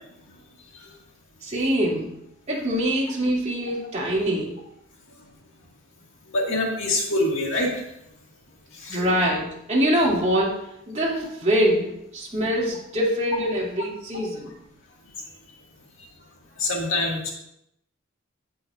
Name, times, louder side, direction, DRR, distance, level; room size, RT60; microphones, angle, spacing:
voice 1, 1.4-2.2 2.5-4.6 8.9-14.5, equal, 35° right, -4 dB, 2.7 m, -24 dB
voice 2, 6.3-7.9 8.8-9.0 16.6-17.3, left 2 dB, 65° left, -1 dB, 2.0 m, -25 dB
16.5 x 6.2 x 2.5 m, 0.80 s
head